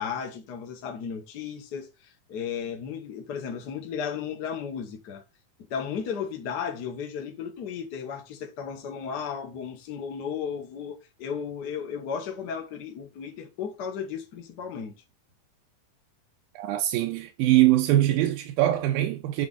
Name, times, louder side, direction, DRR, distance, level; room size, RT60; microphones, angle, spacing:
voice 1, 0.0-5.2 5.7-14.9, left 7 dB, 75° left, 0.9 m, -34 dB
voice 2, 16.6-19.5, right 14 dB, 90° right, 2.4 m, -22 dB
8.2 x 3.7 x 4.0 m
omnidirectional pair, 4.0 m